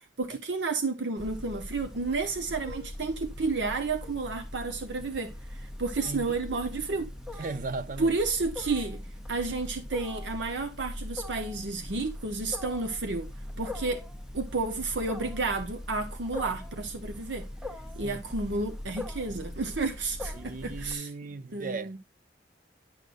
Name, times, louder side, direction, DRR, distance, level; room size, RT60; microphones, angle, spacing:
voice 1, 0.2-7.4 8.0-9.0 9.3-13.3 13.6-14.1 14.3-17.5 18.0-21.1 21.5-22.0, right 3 dB, 70° right, 0.9 m, -31 dB
Wild animals, 1.2-20.9, left 1 dB, 5° right, 0.7 m, -41 dB
voice 2, 6.1-6.4 7.4-8.2 18.0-18.2 20.3-22.0, right 3 dB, 45° right, 0.5 m, -37 dB
10.5 x 6.3 x 2.5 m
head